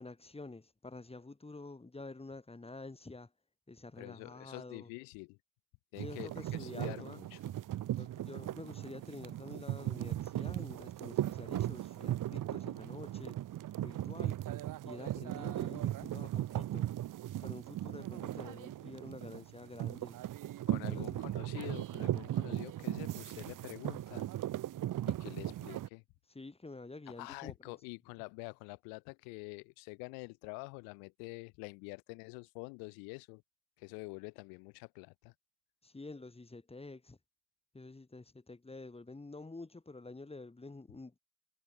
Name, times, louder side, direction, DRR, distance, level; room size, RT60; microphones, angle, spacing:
voice 1, 0.0-3.3 3.7-4.9 6.0-7.2 8.0-13.4 13.8-14.4 14.8-16.9 17.4-20.2 20.9-21.2 26.3-27.8 35.8-37.2 37.7-41.2, left 3 dB, 15° left, 7.5 m, -48 dB
voice 2, 4.0-5.4 5.9-6.3 6.6-7.4 20.7-24.3 25.1-26.0 27.2-33.4 33.8-35.3, left 33 dB, 85° left, 7.7 m, -47 dB
sound 1, 6.0-25.9, right 13 dB, 65° right, 3.5 m, -38 dB
supercardioid pair, 80°, 35 cm